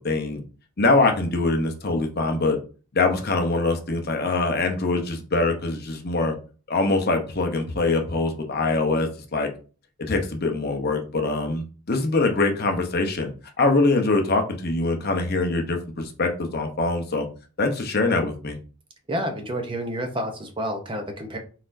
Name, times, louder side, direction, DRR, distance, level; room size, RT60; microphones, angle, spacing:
voice 1, 0.0-0.4 0.8-2.6 2.9-6.3 6.7-9.5 10.0-13.3 13.6-17.3 17.6-18.6, left 3 dB, 45° left, 4 dB, 0.7 m, -23 dB
voice 2, 19.1-21.4, equal, 25° right, 4 dB, 0.6 m, -29 dB
4.1 x 4.1 x 2.6 m, 0.37 s
head